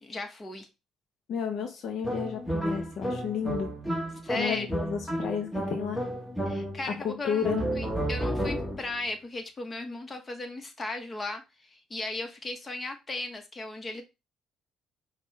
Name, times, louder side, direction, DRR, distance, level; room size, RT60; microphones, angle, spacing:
voice 1, 0.0-0.7 4.2-4.7 6.5-14.0, left 2 dB, 30° left, 1.2 m, -36 dB
voice 2, 1.3-3.7 4.4-6.0 6.9-7.6, left 7 dB, 65° left, 0.7 m, -32 dB
sound 1, 2.0-7.0 7.4-8.9, right 1 dB, 5° left, 1.4 m, -32 dB
5.3 x 2.4 x 3.2 m
cardioid pair, 85°, 0 cm